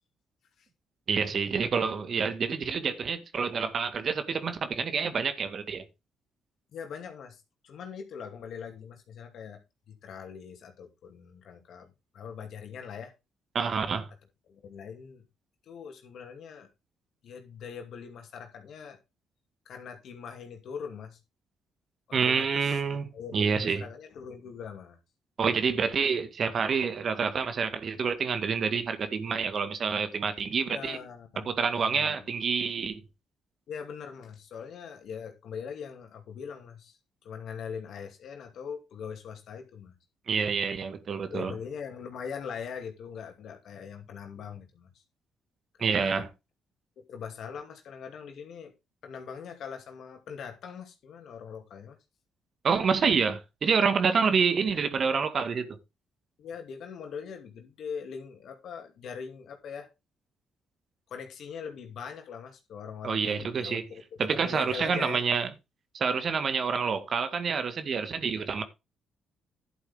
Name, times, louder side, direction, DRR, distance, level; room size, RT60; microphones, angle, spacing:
voice 1, 1.1-5.8 13.5-14.1 22.1-23.1 23.3-23.8 25.4-31.0 31.5-33.0 40.3-41.5 45.8-46.3 52.6-55.7 63.0-63.8 64.2-65.5 65.9-68.6, right 5 dB, 55° right, 1.9 m, -27 dB
voice 2, 6.7-9.6 9.9-13.1 14.5-15.2 15.6-16.7 17.2-19.0 19.7-21.2 22.1-22.8 23.1-25.0 30.6-32.3 33.7-39.9 41.3-45.0 45.7-46.3 47.0-48.7 49.0-52.0 56.4-59.9 61.1-65.2, left 6 dB, 70° left, 2.5 m, -42 dB
11.0 x 8.0 x 3.7 m
supercardioid pair, 55°, 0 cm